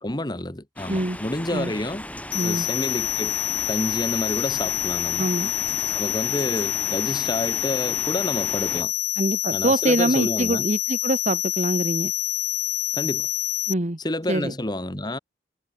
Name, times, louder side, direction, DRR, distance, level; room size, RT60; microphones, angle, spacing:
voice 1, 0.0-2.0 2.4-3.4 3.7-5.3 5.9-8.9 9.5-10.6 12.9-13.3 14.0-15.2, left 1 dB, 25° left, 1.7 m, -29 dB
sound 1, 0.8-8.8, left 1 dB, 10° left, 2.4 m, -37 dB
voice 2, 0.9-1.2 1.5-1.7 2.3-2.7 5.2-5.5 9.2-12.1 13.7-14.0 14.3-14.5, right 1 dB, 45° right, 1.7 m, -24 dB
sound 2, 2.3-13.7, left 15 dB, 75° left, 1.2 m, -27 dB
head